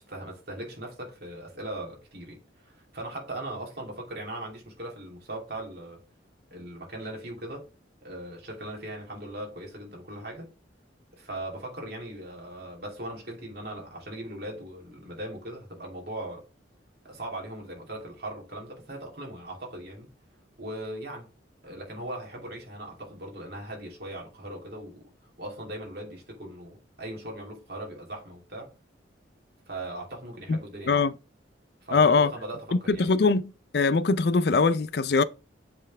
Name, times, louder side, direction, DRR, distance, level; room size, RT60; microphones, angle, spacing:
voice 1, 0.0-6.0 6.5-7.7 8.0-10.5 11.2-16.4 17.0-20.1 20.6-21.3 21.6-28.7 29.7-31.0 31.8-33.2, right 1 dB, 55° right, 2.9 m, -39 dB
voice 2, 31.9-32.3 32.9-33.4 33.7-35.2, left 4 dB, 55° left, 0.4 m, -21 dB
7.5 x 4.4 x 3.4 m
head